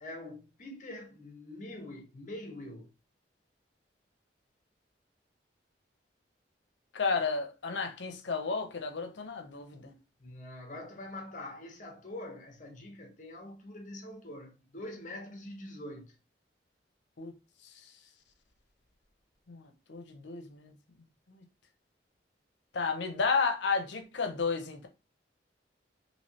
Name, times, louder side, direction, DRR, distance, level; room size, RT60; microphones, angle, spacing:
voice 1, 0.0-2.9 10.2-16.1, left 1 dB, 45° left, 0.8 m, -44 dB
voice 2, 6.9-9.9 17.2-17.3 19.5-20.7 22.7-24.9, left 4 dB, 80° left, 0.6 m, -32 dB
3.2 x 2.8 x 2.7 m
head